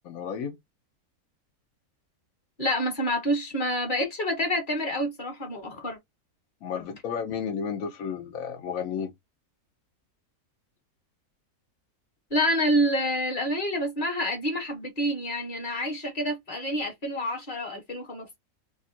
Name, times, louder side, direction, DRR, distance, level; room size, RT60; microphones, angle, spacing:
voice 1, 0.0-0.5 6.6-9.1, left 7 dB, 70° left, 1.2 m, -32 dB
voice 2, 2.6-6.0 6.7-7.0 12.3-18.4, equal, 35° left, 1.3 m, -28 dB
3.0 x 2.5 x 4.1 m
omnidirectional pair, 1.6 m